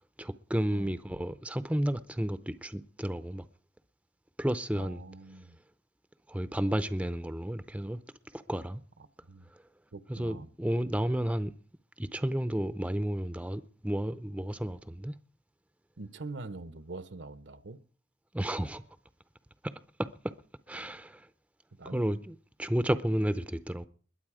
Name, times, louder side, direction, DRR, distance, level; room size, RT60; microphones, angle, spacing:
voice 1, 0.2-3.4 4.4-5.0 6.3-8.0 8.3-8.8 10.1-11.5 12.0-15.1 18.3-18.8 20.0-20.3 20.7-21.3 21.9-23.9, right 1 dB, 5° right, 0.6 m, -32 dB
voice 2, 4.7-5.6 9.3-9.5 9.9-10.5 16.0-17.8 21.8-22.1, right 3 dB, 70° right, 0.8 m, -44 dB
21.5 x 8.1 x 4.9 m
head